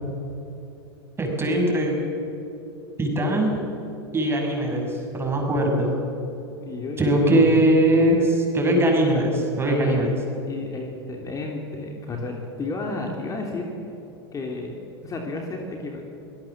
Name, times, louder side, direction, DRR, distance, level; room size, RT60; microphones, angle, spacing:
voice 1, 1.2-2.0 3.0-3.6 4.1-6.0 7.0-9.3 9.6-10.1, right 1 dB, 15° right, 1 dB, 6.4 m, -21 dB
voice 2, 6.6-7.6 9.1-9.2 9.7-10.1 10.5-13.7 14.3-14.8 15.0-16.0, left 3 dB, 25° left, 1 dB, 3.1 m, -32 dB
24.5 x 18.5 x 7.4 m, 3.0 s
hypercardioid pair, 100°, 14 cm